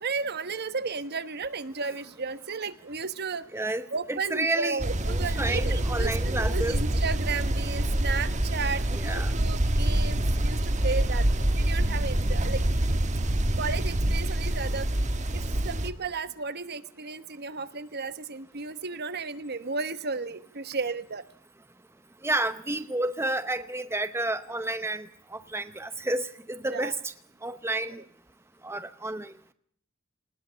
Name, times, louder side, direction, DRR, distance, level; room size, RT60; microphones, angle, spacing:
voice 1, 0.0-3.4 3.9-12.6 13.6-14.9 15.3-21.2 26.7-26.9, right 4 dB, 50° right, 13 dB, 1.2 m, -34 dB
voice 2, 3.5-4.8 5.1-6.8 8.9-9.3 22.2-27.1 27.4-28.0 28.6-29.3, right 2 dB, 10° right, 11 dB, 0.8 m, -31 dB
sound 1, 4.8-15.9, right 1 dB, 35° right, 1.4 m, -26 dB
20.0 x 19.0 x 6.9 m, 0.63 s
head